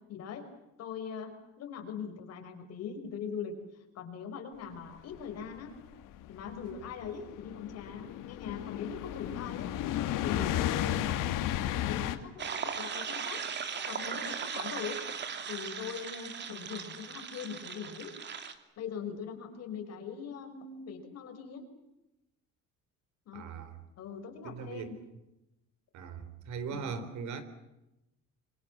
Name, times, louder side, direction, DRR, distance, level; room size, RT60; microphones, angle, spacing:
voice 1, 0.1-0.5 0.8-3.5 3.9-5.8 6.3-9.7 10.2-11.4 11.7-13.4 13.8-15.0 15.5-18.1 18.8-21.7 23.2-23.5 24.0-24.9 26.7-26.9, left 7 dB, 50° left, 6 dB, 5.3 m, -41 dB
sound 1, 5.1-12.2, left 12 dB, 85° left, 2.6 m, -33 dB
sound 2, 12.4-18.5, right 6 dB, 35° right, 2.5 m, -38 dB
voice 2, 23.3-23.8 24.4-25.0 25.9-27.4, right 5 dB, 60° right, 12 dB, 3.9 m, -39 dB
26.5 x 25.0 x 7.4 m, 0.93 s
cardioid pair, 170°, 32 cm